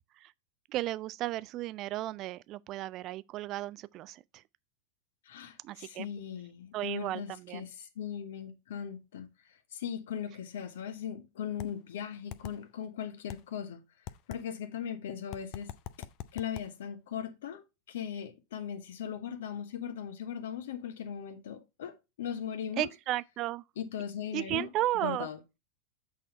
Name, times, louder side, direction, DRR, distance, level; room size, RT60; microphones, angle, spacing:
voice 1, 0.7-4.2 5.6-6.1 6.7-7.7 22.8-23.6 24.3-25.3, right 15 dB, 35° right, 0.4 m, -34 dB
voice 2, 5.2-9.3 9.7-13.8 14.3-15.7 16.0-16.1 16.3-22.9 23.8-24.7 25.0-25.4, left 8 dB, 60° left, 1.2 m, -39 dB
sound 1, 11.6-11.7 12.3-12.6 13.3-13.4 14.1-14.4 15.3-16.7, left 13 dB, 40° left, 0.5 m, -40 dB
8.1 x 4.2 x 4.2 m
figure-of-eight pair, 90°, 0 cm